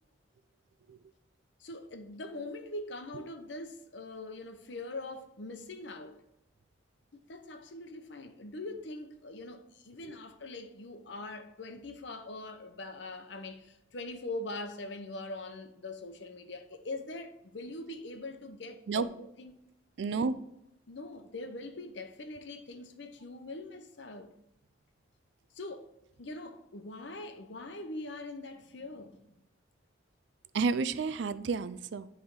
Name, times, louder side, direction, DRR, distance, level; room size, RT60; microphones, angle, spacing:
voice 1, 1.6-6.2 7.1-19.5 20.0-20.3 20.9-24.3 25.5-25.9 26.2-29.3, left 2 dB, 70° left, 0.8 m, -42 dB
voice 2, 20.0-20.3 30.5-32.1, right 4 dB, 65° right, 0.4 m, -31 dB
10.5 x 3.5 x 3.7 m
head